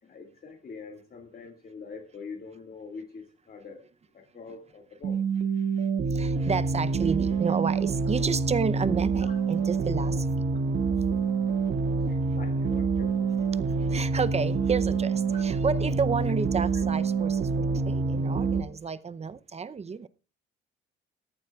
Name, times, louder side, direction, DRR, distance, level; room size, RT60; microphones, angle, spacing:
voice 1, 0.0-3.8 4.1-5.2 9.3-9.4 11.6-13.3, left 4 dB, 50° left, 2.1 m, -44 dB
sound 1, 5.0-18.6, right 4 dB, 70° right, 1.9 m, -27 dB
voice 2, 5.8-10.3 13.8-20.1, right 5 dB, 35° right, 0.7 m, -31 dB
18.5 x 14.0 x 2.4 m
cardioid pair, 90°, 20 cm